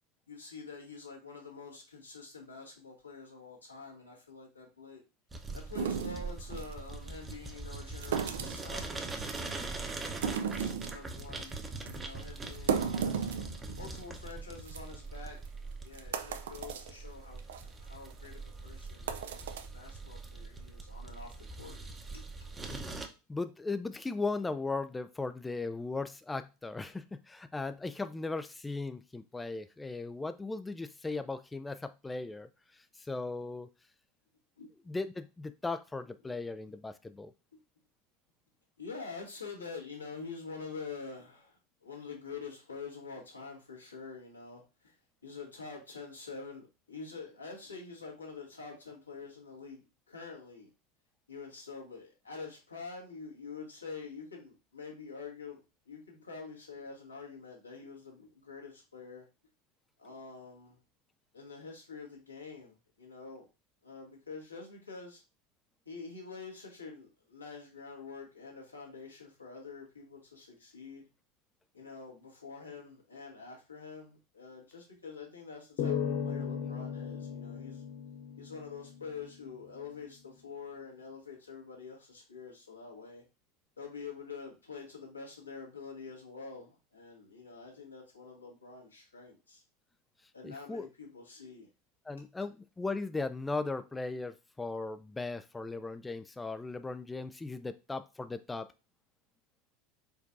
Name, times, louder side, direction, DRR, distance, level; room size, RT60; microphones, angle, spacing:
voice 1, 0.3-5.0 5.5-9.0 9.4-13.2 13.8-15.4 15.8-19.4 19.7-21.8 22.1-22.2 34.6-34.7 38.8-44.9 45.2-49.8 50.1-50.7 51.3-55.6 55.9-59.2 60.0-60.8 61.3-63.5 63.8-65.2 65.9-71.1 71.7-77.8 78.4-83.2 83.8-89.6 90.3-91.7, left 4 dB, 90° left, -2 dB, 1.8 m, -46 dB
sound 1, 5.3-23.1, right 3 dB, 20° right, 0.8 m, -42 dB
sound 2, 5.7-6.7 8.0-8.7 9.2-9.7 10.1-11.0 11.4-11.5 11.9-12.0 12.4-14.0 14.3-14.4 14.7-14.8 15.4-15.5 15.9-16.9 17.4-17.6 18.1-18.3 18.9-19.7, right 7 dB, 70° right, 0.5 m, -34 dB
voice 2, 23.3-33.7 34.9-37.3 90.4-90.9 92.1-98.7, left 3 dB, 10° left, 11 dB, 0.3 m, -37 dB
sound 3, 75.8-79.2, left 7 dB, 55° left, 0.9 m, -36 dB
4.6 x 4.4 x 2.6 m, 0.29 s
figure-of-eight pair, 80°, 0 cm